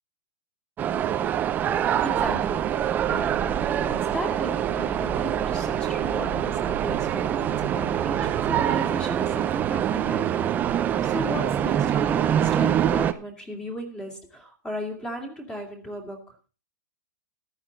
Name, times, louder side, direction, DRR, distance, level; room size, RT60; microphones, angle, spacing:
sound 1, 0.8-13.1, right 10 dB, 15° right, 0.6 m, -25 dB
voice 1, 2.0-2.8 3.1-3.5 3.9-16.3, equal, 5° left, 3 dB, 2.5 m, -36 dB
sound 2, 6.2-12.2, right 15 dB, 50° right, 1.1 m, -41 dB
14.5 x 11.0 x 4.0 m, 0.33 s
hypercardioid pair, 165°, 11 cm